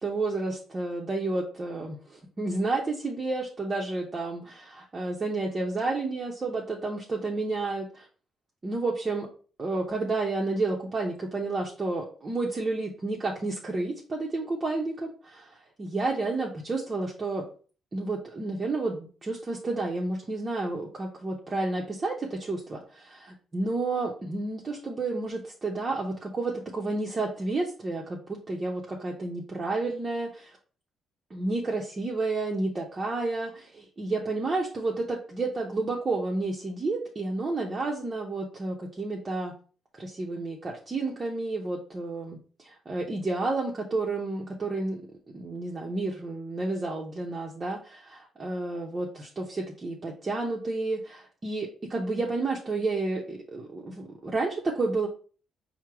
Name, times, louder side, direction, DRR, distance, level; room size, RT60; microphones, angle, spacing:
voice 1, 0.0-8.1 8.6-9.3 9.6-17.4 17.9-30.6 31.3-39.5 39.9-42.4 42.6-45.0 45.3-47.8 48.4-55.1, right 2 dB, 30° right, -2 dB, 0.8 m, -31 dB
4.5 x 2.1 x 4.6 m, 0.39 s
cardioid pair, 90°, 0 cm